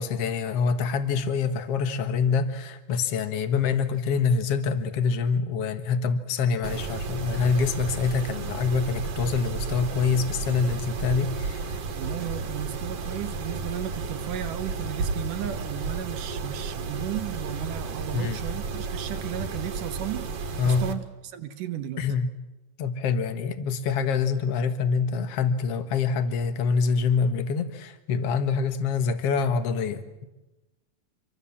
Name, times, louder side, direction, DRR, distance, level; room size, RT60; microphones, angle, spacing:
voice 1, 0.0-11.7 18.1-18.4 20.6-20.9 22.0-22.3 22.8-30.2, left 5 dB, 55° left, 9 dB, 2.2 m, -25 dB
Mechanisms, 6.6-20.9, right 4 dB, 50° right, 2.4 m, -32 dB
voice 2, 11.9-20.3 20.6-22.0, right 11 dB, 70° right, 9 dB, 2.6 m, -34 dB
27.0 x 23.0 x 7.4 m, 1.0 s
omnidirectional pair, 4.0 m